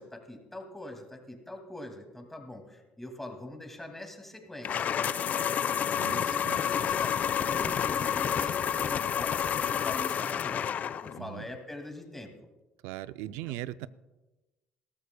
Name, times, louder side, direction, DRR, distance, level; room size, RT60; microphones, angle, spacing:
voice 1, 0.0-4.9 5.6-7.2 7.4-10.6 11.0-12.3 13.3-13.4, left 1 dB, 5° left, 4 dB, 2.2 m, -43 dB
sound 1, 4.6-11.2, left 8 dB, 45° left, 0.5 m, -29 dB
voice 2, 6.0-6.6 11.2-11.5 12.8-13.9, right 15 dB, 80° right, 16 dB, 0.4 m, -39 dB
20.0 x 13.5 x 2.2 m, 1.1 s
supercardioid pair, 90°, 4 cm